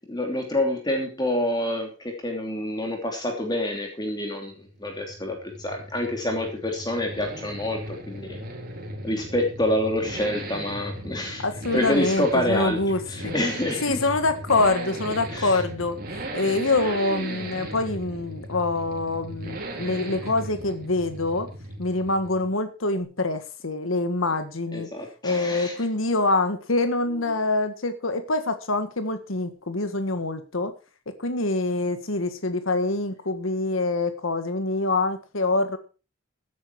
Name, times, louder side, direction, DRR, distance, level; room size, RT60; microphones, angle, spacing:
voice 1, 0.1-4.5 4.8-8.4 9.0-11.4 11.7-12.8 13.1-14.1 15.3-15.6 24.7-25.7, left 1 dB, 20° left, 3 dB, 3.0 m, -27 dB
sound 1, 4.5-22.5, right 1 dB, 45° right, 3.6 m, -37 dB
voice 2, 11.4-13.3 13.8-16.0 16.3-21.5 21.8-24.9 25.2-30.7 31.2-35.8, left 2 dB, 85° left, 9 dB, 1.6 m, -25 dB
16.0 x 9.6 x 4.7 m, 0.33 s
head